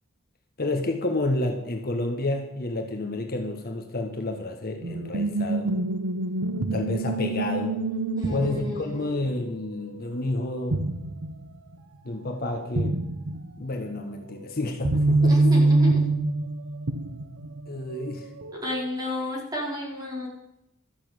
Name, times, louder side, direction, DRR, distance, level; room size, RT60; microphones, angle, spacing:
voice 1, 0.6-5.7 6.7-7.8 8.3-10.8 12.0-13.1 13.6-15.4 17.7-18.3, left 2 dB, 45° left, 3 dB, 1.4 m, -30 dB
sound 1, 4.8-10.4 10.7-11.5 11.7-11.8 12.8-13.5 14.3-17.7 18.4-18.9, right 2 dB, 75° right, 0.9 m, -25 dB
voice 2, 8.2-9.2 15.3-16.0 18.6-20.3, left 1 dB, 20° right, -4 dB, 4.4 m, -31 dB
13.0 x 6.9 x 8.1 m, 0.86 s
head